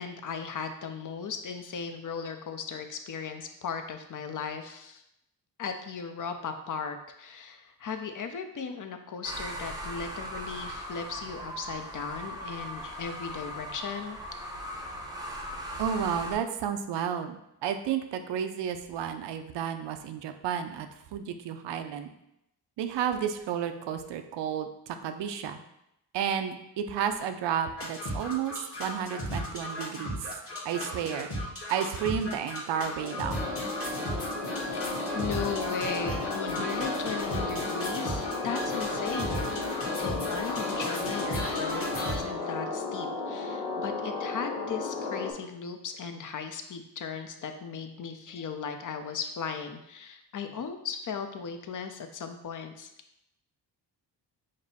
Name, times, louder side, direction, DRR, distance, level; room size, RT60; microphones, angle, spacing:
voice 1, 0.0-5.0 5.6-14.2 34.7-39.5 39.8-52.9, left 6 dB, 50° left, 7 dB, 0.6 m, -37 dB
sound 1, 9.2-16.4, equal, 10° right, 0.7 m, -39 dB
voice 2, 15.8-22.1 22.8-25.6 26.1-30.2 30.6-31.3 31.7-33.4, right 8 dB, 80° right, 8 dB, 0.5 m, -32 dB
sound 2, 27.8-42.2, equal, 30° left, 1.2 m, -35 dB
sound 3, 33.0-45.3, left 3 dB, 75° left, 0.9 m, -34 dB
5.1 x 2.0 x 4.1 m, 0.82 s
cardioid pair, 75°, 42 cm